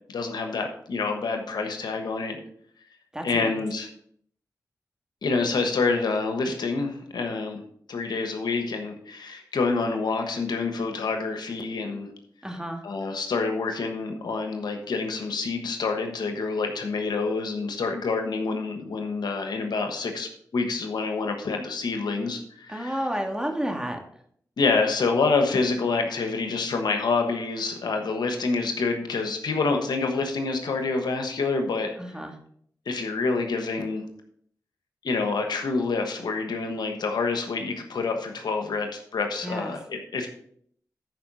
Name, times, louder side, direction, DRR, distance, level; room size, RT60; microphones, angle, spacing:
voice 1, 0.1-2.4 3.2-3.9 5.2-7.6 7.9-12.1 12.8-23.0 24.6-32.0 32.9-34.1 35.0-40.3, left 4 dB, 85° left, 5 dB, 1.2 m, -27 dB
voice 2, 3.1-3.6 12.4-12.8 22.7-24.0 32.0-32.3 39.4-39.7, equal, 10° right, 2 dB, 2.3 m, -31 dB
11.0 x 4.8 x 5.4 m, 0.65 s
cardioid pair, 40°, 7 cm